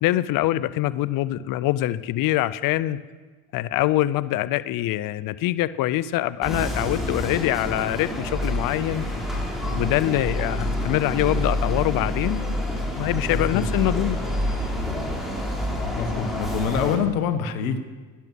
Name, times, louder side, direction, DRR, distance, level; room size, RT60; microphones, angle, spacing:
voice 1, 0.0-3.0 3.5-9.0 9.7-12.6 13.0-14.2, left 15 dB, 55° left, 16 dB, 0.6 m, -24 dB
sound 1, 6.4-17.0, left 1 dB, ahead, 4.0 m, -27 dB
voice 2, 13.3-13.7 16.0-17.8, left 7 dB, 85° left, 9 dB, 1.3 m, -25 dB
11.5 x 10.5 x 6.2 m, 1.4 s
hypercardioid pair, 75°, 41 cm